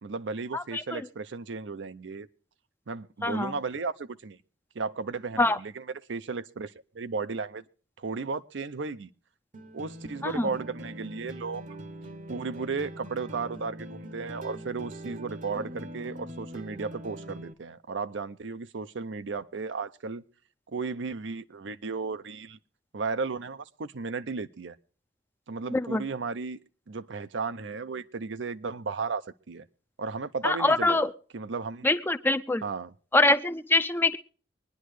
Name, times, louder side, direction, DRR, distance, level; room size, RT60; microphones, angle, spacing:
voice 1, 0.0-2.3 2.9-4.4 4.7-7.6 8.0-9.1 9.7-11.6 12.3-20.2 20.7-22.6 22.9-24.8 25.5-26.6 26.9-29.7 30.0-31.9 32.6-32.9, right 4 dB, 75° right, 0.6 m, -34 dB
voice 2, 0.5-1.0 3.2-3.5 5.4-5.6 10.2-10.5 25.7-26.0 30.4-31.1 31.8-32.6 33.1-34.2, left 2 dB, 10° left, 0.5 m, -24 dB
sound 1, 9.5-17.5, right 1 dB, 45° right, 0.8 m, -42 dB
24.0 x 10.0 x 3.2 m
head